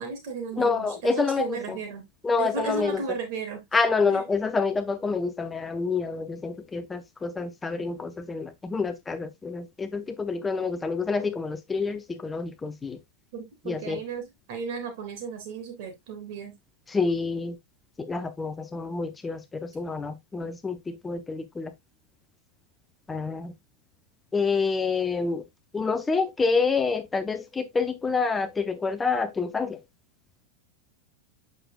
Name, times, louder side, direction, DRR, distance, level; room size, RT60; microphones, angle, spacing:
voice 1, 0.0-2.0 2.4-3.6 4.1-4.2 13.3-16.5, right 5 dB, 50° right, 2.9 m, -34 dB
voice 2, 0.5-1.8 2.2-3.0 3.7-13.0 13.7-14.0 16.9-17.6 18.0-21.7 23.1-23.5 24.3-25.5 25.7-29.8, left 4 dB, 15° left, 0.7 m, -28 dB
7.7 x 6.4 x 2.2 m
figure-of-eight pair, 90°, 0 cm